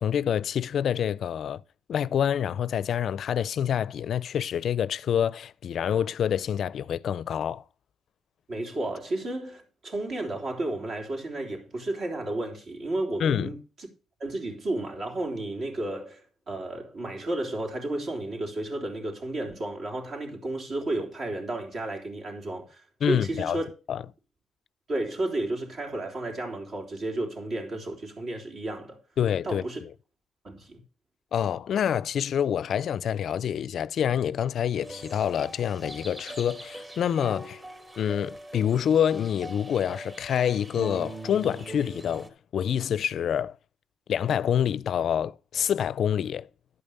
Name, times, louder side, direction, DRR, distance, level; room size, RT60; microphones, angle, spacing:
voice 1, 0.0-1.6 1.9-7.6 13.2-13.5 23.0-23.6 23.9-24.0 29.2-29.6 31.3-37.6 38.0-43.6 44.1-46.5, left 9 dB, 65° left, 0.4 m, -27 dB
voice 2, 8.5-13.6 14.2-23.7 24.9-29.0 29.4-29.8 30.4-30.8, right 2 dB, 55° right, 3.8 m, -32 dB
sound 1, 34.8-42.3, right 2 dB, 25° right, 2.4 m, -42 dB
11.5 x 5.4 x 6.5 m
cardioid pair, 90°, 0 cm